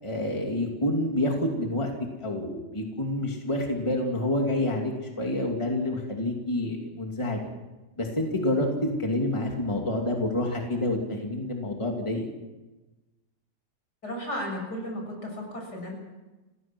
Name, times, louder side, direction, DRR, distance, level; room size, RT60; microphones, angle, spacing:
voice 1, 0.0-1.9 2.2-7.5 8.0-12.3, left 1 dB, 15° left, 1 dB, 2.7 m, -28 dB
voice 2, 14.0-15.9, equal, 70° left, 1 dB, 7.3 m, -34 dB
30.0 x 16.5 x 6.1 m, 1.1 s
omnidirectional pair, 1.8 m